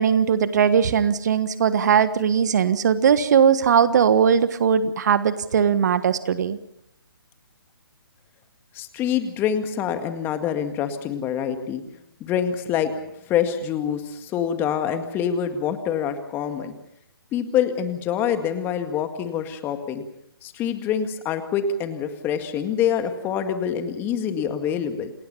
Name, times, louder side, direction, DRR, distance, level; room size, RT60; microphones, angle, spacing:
voice 1, 0.0-6.6, right 7 dB, 50° right, 13 dB, 1.4 m, -19 dB
voice 2, 8.7-11.8 12.2-12.9 13.3-16.8 17.3-20.0 20.4-25.1, left 8 dB, 15° left, 8 dB, 2.0 m, -25 dB
28.0 x 20.0 x 5.7 m, 0.78 s
figure-of-eight pair, 140°, 12 cm